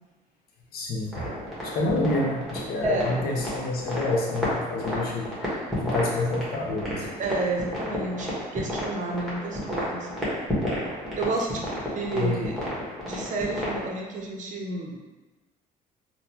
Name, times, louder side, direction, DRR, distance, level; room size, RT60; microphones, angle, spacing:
voice 1, 0.7-1.3 1.6-7.1 12.1-12.5, left 2 dB, 65° left, -1 dB, 0.8 m, -28 dB
sound 1, 1.1-13.9, equal, ahead, 1.2 m, -31 dB
voice 2, 7.2-10.1 11.2-11.6 11.9-12.6 13.0-15.0, right 2 dB, 50° right, 1 dB, 0.6 m, -30 dB
3.7 x 2.1 x 2.9 m, 1.2 s
cardioid pair, 110°, 17 cm